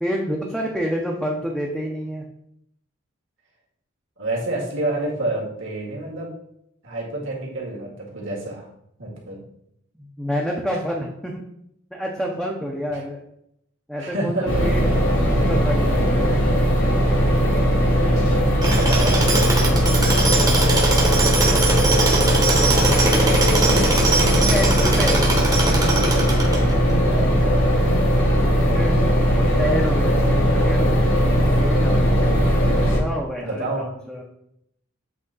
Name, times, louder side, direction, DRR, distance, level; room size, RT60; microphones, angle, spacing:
voice 1, 0.0-2.2 10.0-11.4 11.9-13.2 13.9-16.4 22.8-23.8 24.3-25.4 28.7-31.2 31.6-32.1 32.9-34.2, equal, ahead, -2 dB, 0.6 m, -29 dB
voice 2, 4.2-6.3 6.8-8.7 9.0-9.4 12.9-13.0 13.9-14.8 18.6-19.7 23.2-24.2 26.8-28.5 33.4-33.8, right 2 dB, 65° right, -3 dB, 2.0 m, -29 dB
sound 1, 14.5-33.0, equal, 75° left, 2.0 m, -19 dB
Tools, 18.6-26.9, right 2 dB, 20° right, 1.0 m, -22 dB
7.9 x 3.3 x 4.0 m, 0.75 s
head